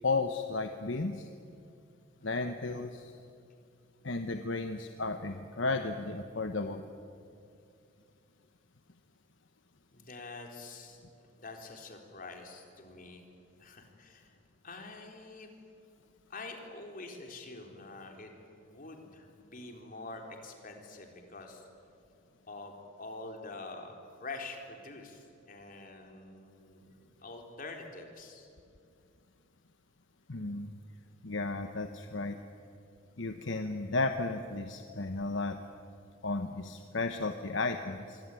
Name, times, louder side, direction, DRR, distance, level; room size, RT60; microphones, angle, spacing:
voice 1, 0.0-1.3 2.2-3.1 4.0-6.8 30.3-30.7 31.2-32.4 33.2-35.6 36.2-38.2, left 3 dB, 70° left, 7 dB, 1.2 m, -34 dB
voice 2, 2.2-2.5 9.9-11.0 11.4-13.2 13.6-14.3 14.6-15.5 16.3-21.7 22.5-23.9 24.2-28.5, left 3 dB, 45° left, 2 dB, 4.0 m, -46 dB
25.5 x 24.5 x 9.2 m, 2.5 s
head